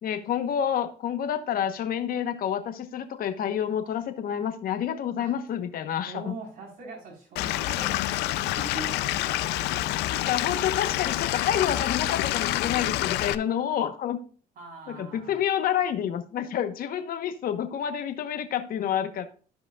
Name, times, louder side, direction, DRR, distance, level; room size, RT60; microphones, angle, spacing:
voice 1, 0.0-6.3 10.1-14.2 14.9-19.3, left 9 dB, 60° left, 8 dB, 1.0 m, -28 dB
voice 2, 6.1-10.4 14.6-15.4, right 3 dB, 55° right, -3 dB, 4.0 m, -42 dB
Stream / Liquid, 7.4-13.4, left 15 dB, 85° left, 0.5 m, -27 dB
14.5 x 5.0 x 2.3 m, 0.41 s
cardioid pair, 110°, 17 cm